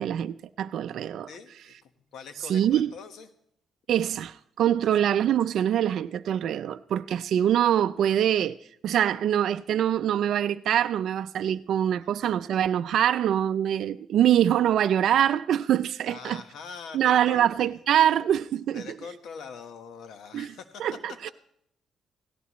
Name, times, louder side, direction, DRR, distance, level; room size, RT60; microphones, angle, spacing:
voice 1, 0.0-1.3 2.5-2.9 3.9-8.6 8.8-16.4 16.9-18.9 20.3-20.5 20.8-21.3, right 10 dB, 70° right, 0.4 m, -24 dB
voice 2, 1.3-3.3 16.1-17.7 18.7-20.9, left 5 dB, 75° left, 1.4 m, -43 dB
17.0 x 16.5 x 3.1 m
cardioid pair, 90°, 0 cm